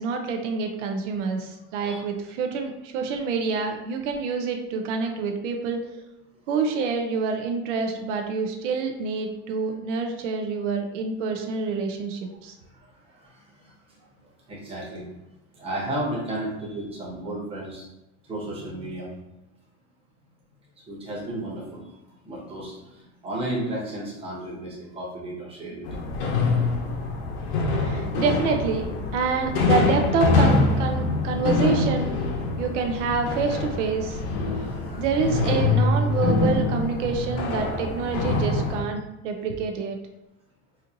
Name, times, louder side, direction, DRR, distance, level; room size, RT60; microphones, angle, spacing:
voice 1, 0.0-5.8 6.5-12.5 27.7-32.2 32.6-34.2 35.0-40.0, right 5 dB, 90° right, 3 dB, 0.6 m, -27 dB
voice 2, 12.6-15.1 15.5-17.8 18.2-19.1 20.9-26.0 34.4-35.0, right 1 dB, 15° right, -6 dB, 1.1 m, -34 dB
sound 1, 25.8-38.8, left 3 dB, 65° left, 0.8 m, -24 dB
4.2 x 2.6 x 2.6 m, 0.94 s
supercardioid pair, 160°, 35 cm